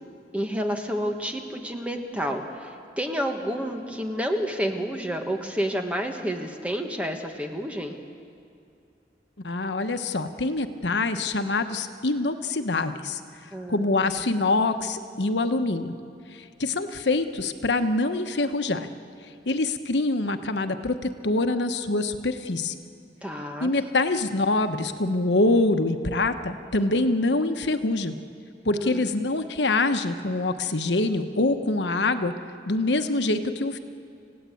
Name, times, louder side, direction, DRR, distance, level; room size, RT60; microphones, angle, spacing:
voice 1, 0.3-8.0 13.5-13.9 23.2-23.7 28.7-29.1, equal, 10° right, 3 dB, 1.6 m, -30 dB
voice 2, 9.4-13.2 13.7-15.9 16.3-18.9 19.5-20.9 21.2-22.8 23.6-28.2 28.6-32.3 32.7-33.8, left 2 dB, 85° left, 8 dB, 1.1 m, -25 dB
29.5 x 16.0 x 8.5 m, 2.5 s
head